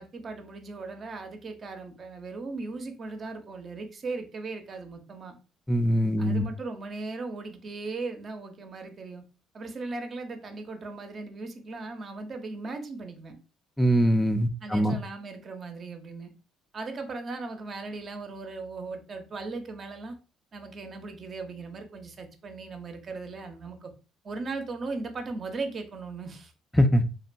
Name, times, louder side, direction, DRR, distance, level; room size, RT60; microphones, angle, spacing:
voice 1, 0.0-5.4 6.2-9.2 9.5-13.4 14.6-16.3 16.7-20.2 20.5-23.9 24.2-26.5, right 3 dB, 45° right, 6 dB, 0.6 m, -38 dB
voice 2, 5.7-6.4 13.8-14.9 26.8-27.1, equal, 5° left, 6 dB, 0.3 m, -22 dB
2.7 x 2.2 x 2.5 m, 0.33 s
supercardioid pair, 70°, 0 cm